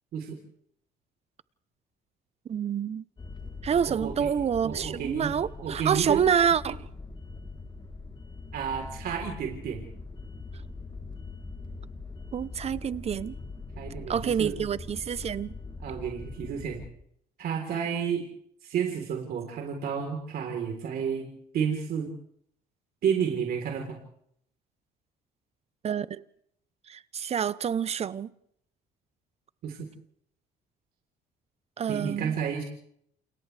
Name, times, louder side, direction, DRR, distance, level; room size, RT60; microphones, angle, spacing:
voice 1, 2.5-3.0 3.6-6.9 12.3-13.3 14.1-15.5 25.8-26.2 26.9-28.3 31.8-32.3, right 8 dB, 40° right, 0.8 m, -27 dB
sound 1, 3.2-16.9, left 3 dB, 25° left, 2.6 m, -42 dB
voice 2, 3.9-4.3 4.6-5.3 5.6-6.2 8.5-9.8 13.8-14.6 15.8-16.8 17.4-18.2 18.6-21.3 21.5-22.1 23.0-24.0 29.6-29.9 31.9-32.6, right 7 dB, 65° right, 3.8 m, -31 dB
29.0 x 28.5 x 3.4 m
cardioid pair, 110°, 17 cm